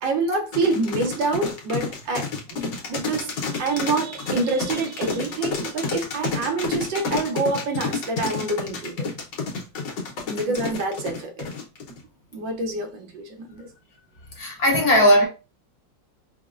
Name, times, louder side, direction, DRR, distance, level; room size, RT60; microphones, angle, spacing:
voice 1, 0.0-9.1 10.3-11.5 12.3-13.7, right 3 dB, 85° right, 1.5 m, -27 dB
sound 1, 0.5-12.0, left 4 dB, 75° left, 1.6 m, -29 dB
voice 2, 10.3-10.6 14.3-15.3, equal, 55° left, 1.4 m, -20 dB
5.2 x 2.1 x 2.4 m
omnidirectional pair, 2.0 m